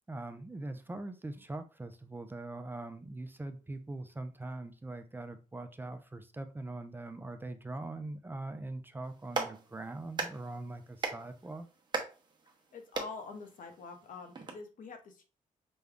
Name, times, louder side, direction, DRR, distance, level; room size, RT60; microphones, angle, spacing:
voice 1, 0.1-11.7, right 2 dB, 15° right, 7 dB, 0.4 m, -42 dB
Clapping, 9.0-14.5, right 4 dB, 30° right, 0.8 m, -40 dB
voice 2, 12.7-15.2, left 4 dB, 70° left, 6 dB, 0.8 m, -45 dB
5.1 x 2.2 x 3.5 m, 0.34 s
cardioid pair, 120°, 14 cm